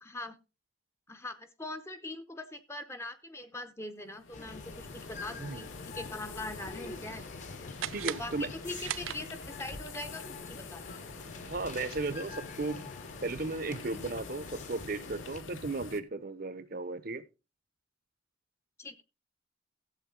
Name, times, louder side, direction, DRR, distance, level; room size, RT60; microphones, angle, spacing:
voice 1, 0.0-0.3 1.1-7.3 8.0-10.8 18.8-19.0, left 2 dB, 15° left, 0.8 m, -42 dB
sound 1, 4.1-16.0, left 4 dB, 75° left, 0.9 m, -47 dB
sound 2, 4.3-15.4, left 3 dB, 35° left, 1.1 m, -46 dB
sound 3, 7.8-9.7, right 12 dB, 80° right, 0.4 m, -39 dB
voice 2, 7.9-8.5 11.4-12.9 13.2-17.2, right 3 dB, 45° right, 0.8 m, -35 dB
14.0 x 7.8 x 3.8 m
head